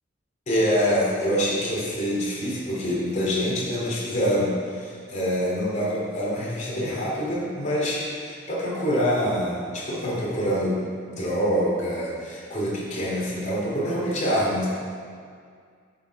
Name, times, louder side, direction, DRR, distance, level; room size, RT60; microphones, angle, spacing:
voice 1, 0.5-10.8 11.1-14.7, equal, 40° left, -6 dB, 2.7 m, -25 dB
10.0 x 6.7 x 4.7 m, 2.1 s
head